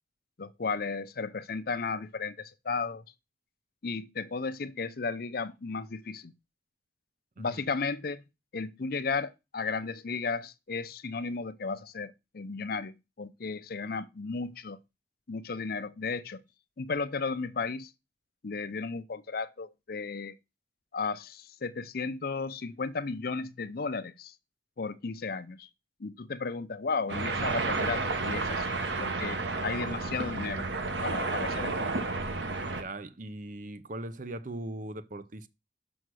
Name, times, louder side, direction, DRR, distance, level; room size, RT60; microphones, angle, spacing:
voice 1, 0.4-3.0 3.8-6.3 7.4-8.2 8.5-14.8 15.3-16.4 16.8-17.9 18.4-20.3 20.9-24.3 24.8-25.7 26.0-30.7 31.0-31.9, left 4 dB, 55° left, 0.6 m, -34 dB
sound 1, 27.1-32.8, right 3 dB, 85° right, 1.2 m, -31 dB
voice 2, 32.8-35.5, right 1 dB, 45° right, 0.7 m, -40 dB
6.3 x 5.6 x 6.2 m
head